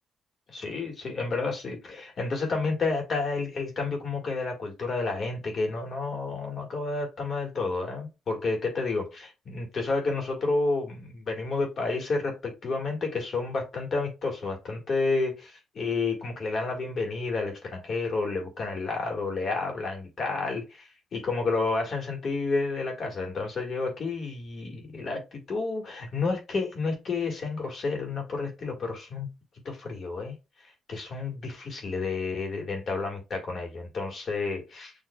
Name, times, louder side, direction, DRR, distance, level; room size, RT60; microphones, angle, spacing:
voice 1, 0.5-29.3 29.7-30.4 30.9-34.9, left 3 dB, 50° left, 1.7 m, -30 dB
6.9 x 3.0 x 2.2 m
cardioid pair, 90°, 0 cm